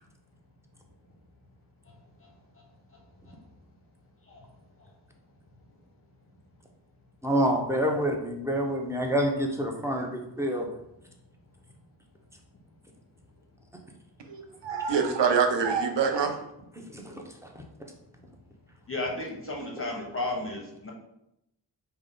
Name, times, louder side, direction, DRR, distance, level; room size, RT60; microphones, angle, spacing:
voice 1, 7.2-10.7 16.8-17.2 17.5-17.6, equal, 5° right, 1 dB, 0.6 m, -27 dB
voice 2, 14.3-16.4, right 6 dB, 80° right, 4 dB, 0.6 m, -25 dB
voice 3, 18.9-20.9, left 2 dB, 30° left, -2 dB, 1.0 m, -34 dB
4.9 x 2.2 x 3.8 m, 0.82 s
wide cardioid pair, 95°, 43 cm